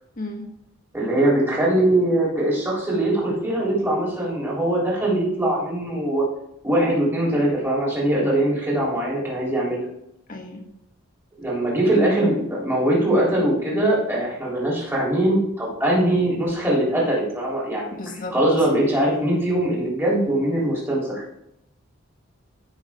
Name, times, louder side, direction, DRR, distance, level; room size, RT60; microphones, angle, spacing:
voice 1, 0.2-0.5 10.3-10.6 17.9-18.3, left 2 dB, 40° left, 3 dB, 1.7 m, -34 dB
voice 2, 0.9-6.2 6.6-9.8 11.4-17.9 18.3-21.2, right 1 dB, 10° right, -5 dB, 3.5 m, -21 dB
14.5 x 6.3 x 3.7 m, 0.79 s
head